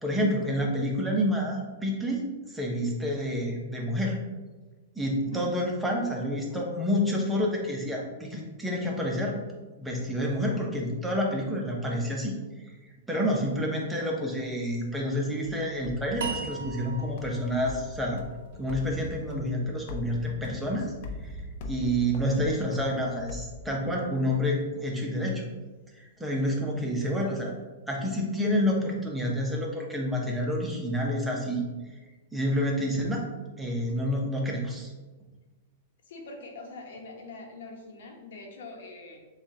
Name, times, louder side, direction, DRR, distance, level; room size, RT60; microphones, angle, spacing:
voice 1, 0.0-2.2 2.5-4.2 5.0-9.4 9.8-12.7 13.1-18.2 18.6-20.9 21.2-21.4 21.6-25.4 25.9-27.5 27.9-31.6 32.3-33.2 33.6-34.9, equal, 5° right, -2 dB, 0.7 m, -28 dB
sound 1, 15.4-24.2, left 2 dB, 50° left, 0.6 m, -42 dB
sound 2, 16.2-19.4, right 4 dB, 75° right, 0.8 m, -39 dB
voice 2, 36.0-39.2, left 2 dB, 70° left, 0 dB, 1.0 m, -43 dB
7.1 x 2.4 x 2.8 m, 1.2 s
supercardioid pair, 155°, 0 cm